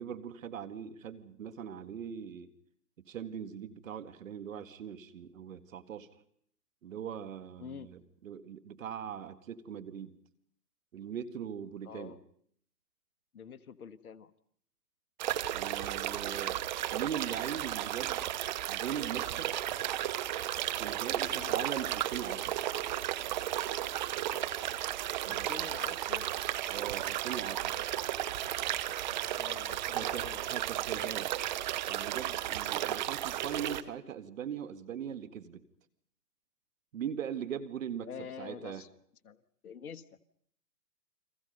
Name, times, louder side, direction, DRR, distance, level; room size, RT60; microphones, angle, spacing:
voice 1, 0.0-2.5 3.1-6.1 6.8-10.1 10.9-12.1 15.5-16.6 16.9-18.2 18.7-19.5 20.7-22.6 25.2-25.5 26.7-27.8 29.9-31.3 31.9-35.6 36.9-38.1 38.4-38.8, right 8 dB, 55° right, 12 dB, 2.0 m, -40 dB
voice 2, 7.6-8.0 11.8-12.2 13.3-14.3 21.3-21.6 25.2-26.3 29.4-30.4 30.9-31.1 33.2-33.5 38.0-38.9 39.2-40.2, left 7 dB, 60° left, 13 dB, 1.4 m, -47 dB
sound 1, 15.2-33.8, right 13 dB, 30° right, 0.9 m, -34 dB
30.0 x 23.0 x 5.4 m, 0.65 s
hypercardioid pair, 140°, 49 cm